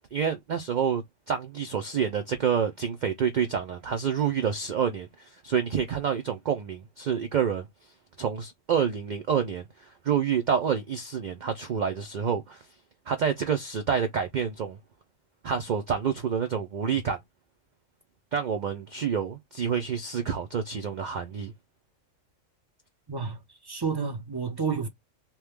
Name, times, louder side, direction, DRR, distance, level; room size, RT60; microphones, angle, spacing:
voice 1, 0.1-1.0 1.3-5.1 5.4-7.7 8.2-9.6 10.1-12.6 13.1-14.8 15.4-17.2 18.3-21.5, right 7 dB, 70° right, 0.4 m, -28 dB
voice 2, 23.1-23.4 23.6-24.9, right 5 dB, 25° right, 0.6 m, -30 dB
3.0 x 2.2 x 3.3 m
omnidirectional pair, 1.3 m